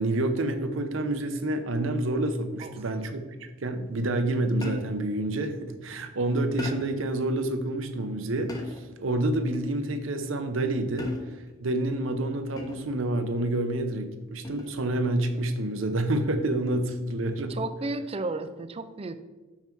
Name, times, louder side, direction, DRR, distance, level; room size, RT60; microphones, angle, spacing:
voice 1, 0.0-11.1 11.6-17.6, right 1 dB, 70° right, 8 dB, 0.7 m, -28 dB
sound 1, 4.6-5.1 6.6-7.1 8.5-9.0 11.0-11.5 12.6-13.0 14.4-14.8, left 2 dB, 20° left, 0.8 m, -37 dB
voice 2, 17.5-19.2, right 2 dB, 30° right, 11 dB, 0.4 m, -33 dB
5.7 x 5.7 x 4.6 m, 1.2 s
head